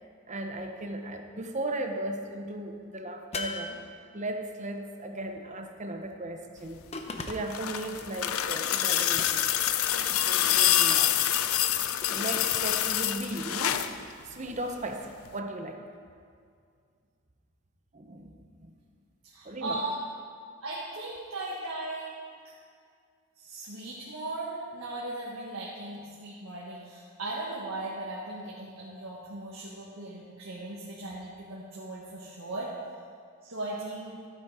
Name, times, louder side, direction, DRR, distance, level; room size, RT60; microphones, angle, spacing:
voice 1, 0.3-3.8 4.1-6.8 7.3-9.5 10.0-11.1 12.1-13.9 14.2-15.8 17.9-18.8 19.4-19.8, right 1 dB, 35° right, 4 dB, 0.9 m, -36 dB
sound 1, 3.3-4.4 6.9-7.7 9.1-9.7 12.0-12.7, left 3 dB, 30° left, 0.8 m, -39 dB
sound 2, 7.2-14.0 15.3-15.4, left 11 dB, 85° left, 0.5 m, -26 dB
voice 2, 19.2-19.9 20.6-22.2 22.4-22.5 23.4-32.7 33.4-34.2, right 2 dB, 80° right, -5 dB, 1.6 m, -38 dB
13.5 x 8.4 x 4.9 m, 2.2 s
head